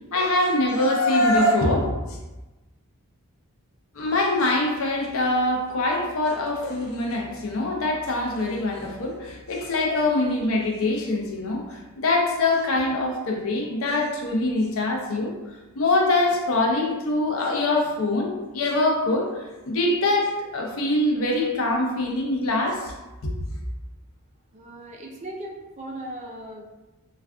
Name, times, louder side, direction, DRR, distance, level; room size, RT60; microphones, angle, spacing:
voice 1, 0.1-2.2 3.9-15.3 15.8-19.3 19.6-22.9 23.2-23.3, left 2 dB, 65° left, 0 dB, 0.6 m, -23 dB
voice 2, 24.5-26.6, right 1 dB, 30° right, 0 dB, 0.4 m, -38 dB
2.4 x 2.3 x 3.4 m, 1.1 s
head